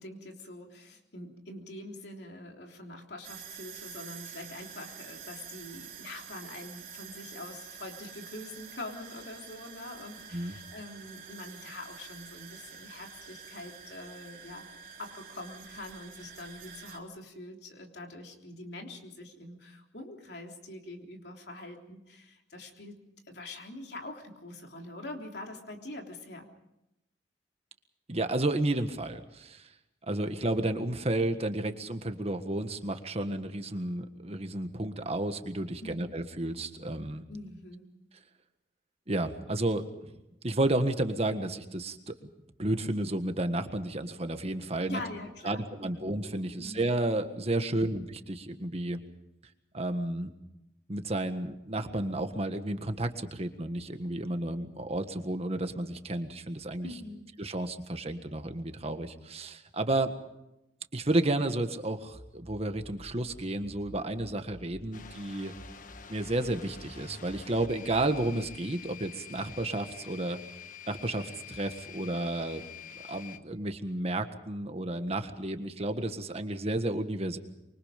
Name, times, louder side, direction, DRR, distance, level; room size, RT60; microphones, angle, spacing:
voice 1, 0.0-14.7 15.0-23.0 23.3-26.5 35.8-36.1 37.3-38.0 44.9-46.1 46.6-46.8 56.8-57.3, left 2 dB, 65° left, 2 dB, 3.6 m, -44 dB
sound 1, 3.2-17.0, right 7 dB, 50° right, 3.5 m, -48 dB
voice 2, 28.1-29.7 30.1-37.2 39.1-39.8 40.4-42.1 42.6-45.0 45.4-49.0 49.7-50.3 50.9-56.9 57.4-60.1 60.9-65.5 66.1-70.4 70.9-72.7 73.1-77.4, right 1 dB, 35° right, 8 dB, 1.6 m, -32 dB
sound 2, 62.1-65.1 65.5-68.6, equal, 30° left, 3.8 m, -50 dB
sound 3, 64.9-73.4, left 8 dB, 50° left, 1.3 m, -48 dB
25.5 x 24.5 x 5.2 m, 0.89 s
head